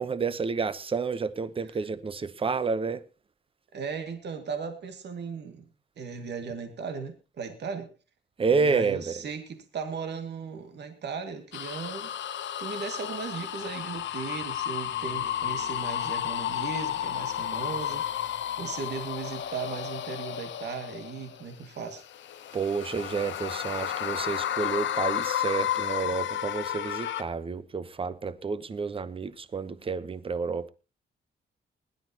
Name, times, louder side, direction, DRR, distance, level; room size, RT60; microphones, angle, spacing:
voice 1, 0.0-3.0 8.4-9.2 22.5-30.7, right 5 dB, 30° right, 0.9 m, -30 dB
voice 2, 3.7-5.7 6.0-7.9 8.5-12.1 12.6-18.1 18.6-22.0, right 5 dB, 65° right, 2.2 m, -37 dB
sound 1, 11.5-21.4 22.0-27.2, left 11 dB, 75° left, 0.9 m, -32 dB
sound 2, 14.9-20.3, left 3 dB, 30° left, 1.6 m, -52 dB
20.5 x 11.5 x 2.9 m
wide cardioid pair, 160°, 19 cm